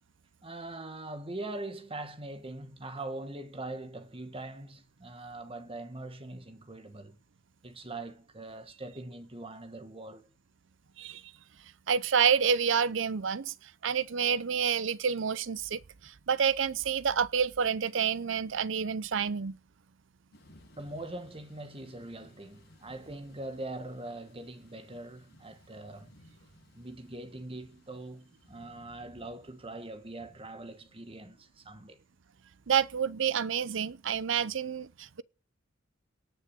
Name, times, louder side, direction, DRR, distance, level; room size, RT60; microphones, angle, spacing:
voice 1, 0.4-7.2 7.6-10.3 20.8-26.2 26.8-32.0, right 2 dB, 30° right, 1.6 m, -42 dB
voice 2, 11.9-19.6 32.7-35.2, right 7 dB, 70° right, 0.6 m, -28 dB
Thunder / Rain, 20.3-31.1, left 1 dB, 60° left, 5.7 m, -61 dB
18.0 x 6.4 x 8.4 m
head